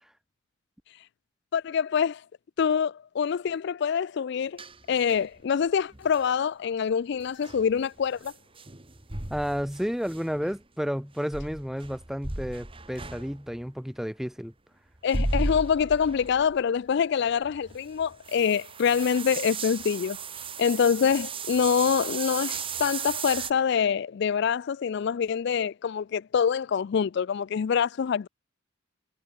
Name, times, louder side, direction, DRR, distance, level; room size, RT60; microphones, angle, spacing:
voice 1, 1.5-2.2 2.6-4.6 4.9-8.3 15.0-20.2 20.6-28.3, left 7 dB, 60° left, 0.4 m, -25 dB
sound 1, 4.6-5.4 5.9-6.2 7.2-10.6 11.3-13.7 14.9-16.6 16.9-17.0 17.4-23.5, right 3 dB, 25° right, 2.1 m, -35 dB
voice 2, 9.3-14.5, equal, ahead, 1.4 m, -31 dB
head